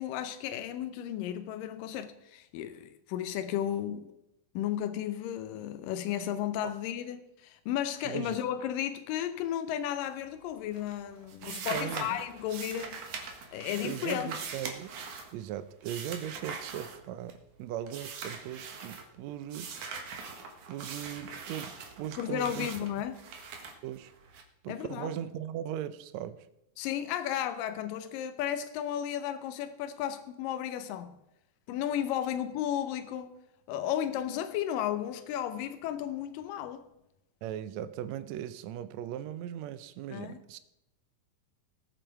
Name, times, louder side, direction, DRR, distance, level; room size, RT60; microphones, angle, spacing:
voice 1, 0.0-4.1 4.5-13.0 13.5-14.3 22.2-23.2 24.7-25.1 26.8-31.2 31.7-33.3 33.7-36.8 40.1-40.4, left 10 dB, 85° left, 2.4 m, -34 dB
voice 2, 8.0-8.4 11.5-12.1 13.8-14.9 15.3-19.9 20.7-22.7 23.8-24.1 24.6-26.5 37.4-40.6, right 11 dB, 85° right, 1.6 m, -38 dB
sound 1, 10.1-10.5 10.7-17.5 17.9-19.1 19.5-24.4, right 5 dB, 65° right, 2.9 m, -42 dB
19.0 x 8.0 x 4.7 m
omnidirectional pair, 3.9 m